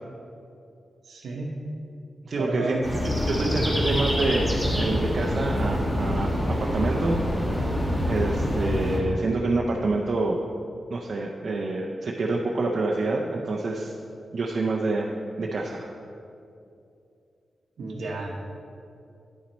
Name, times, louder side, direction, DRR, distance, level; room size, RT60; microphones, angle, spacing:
voice 1, 1.1-1.5 2.4-2.9 17.8-18.4, right 2 dB, 80° right, -1 dB, 0.9 m, -32 dB
voice 2, 2.3-7.2 8.0-10.4 10.9-13.9 14.3-15.1 15.4-15.9, right 2 dB, 50° right, -2 dB, 0.6 m, -27 dB
sound 1, 2.8-9.0, equal, 10° left, 1.3 m, -26 dB
10.0 x 6.0 x 4.2 m, 2.6 s
wide cardioid pair, 155°, 0 cm